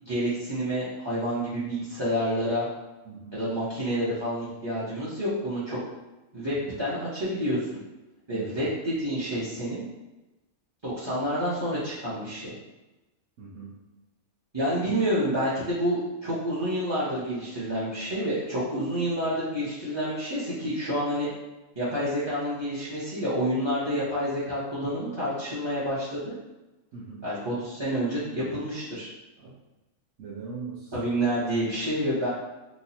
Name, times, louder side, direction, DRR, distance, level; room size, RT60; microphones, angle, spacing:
voice 1, 0.0-2.7 3.3-5.8 6.3-7.6 8.3-9.8 10.8-12.5 14.5-21.3 21.8-26.2 27.2-29.1 30.9-32.3, equal, 25° right, -10 dB, 0.6 m, -28 dB
voice 2, 3.0-3.4 8.3-8.5 13.4-13.7 26.9-27.3 29.4-29.5 30.2-30.9, right 4 dB, 65° right, -6 dB, 0.9 m, -40 dB
2.9 x 2.2 x 4.1 m, 1.1 s
omnidirectional pair, 1.5 m